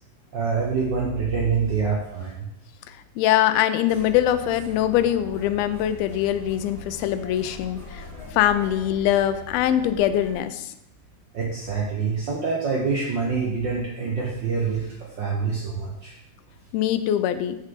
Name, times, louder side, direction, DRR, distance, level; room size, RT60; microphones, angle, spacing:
voice 1, 0.3-2.5 11.3-14.9 15.2-16.1, right 5 dB, 65° right, -3 dB, 1.1 m, -26 dB
voice 2, 3.2-8.0 8.3-10.7 16.7-17.6, left 11 dB, 80° left, 11 dB, 1.6 m, -22 dB
sound 1, 3.8-10.4, left 3 dB, 15° right, 3.2 m, -42 dB
7.2 x 6.6 x 3.7 m, 0.81 s
omnidirectional pair, 3.3 m